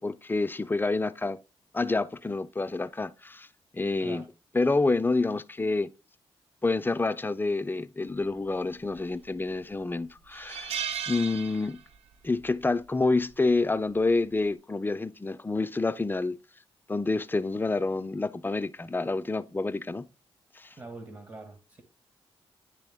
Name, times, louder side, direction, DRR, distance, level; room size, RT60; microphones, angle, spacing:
voice 1, 0.0-1.4 1.7-3.5 3.7-4.2 4.5-5.9 6.6-11.8 12.2-16.4 16.9-20.1 20.6-20.7, left 3 dB, 20° left, 0.5 m, -28 dB
sound 1, 8.9-9.4 9.8-9.9 10.3-12.1 12.4-12.6 13.9-14.2, right 8 dB, 75° right, 0.5 m, -36 dB
voice 2, 20.8-21.8, right 3 dB, 40° right, 1.5 m, -43 dB
9.9 x 3.4 x 3.5 m
cardioid pair, 70°, 10 cm